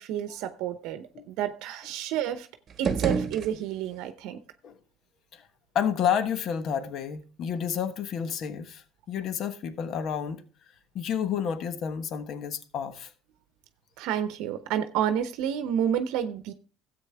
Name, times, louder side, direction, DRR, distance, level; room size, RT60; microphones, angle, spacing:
voice 1, 0.0-2.5 2.8-4.4 14.0-16.5, right 9 dB, 75° right, 0.8 m, -30 dB
sound 1, 2.7-4.1, right 5 dB, 40° right, 1.1 m, -30 dB
voice 2, 5.7-10.4 10.9-13.1, left 8 dB, 55° left, 1.2 m, -30 dB
13.0 x 8.2 x 3.4 m
supercardioid pair, 90°, 0 cm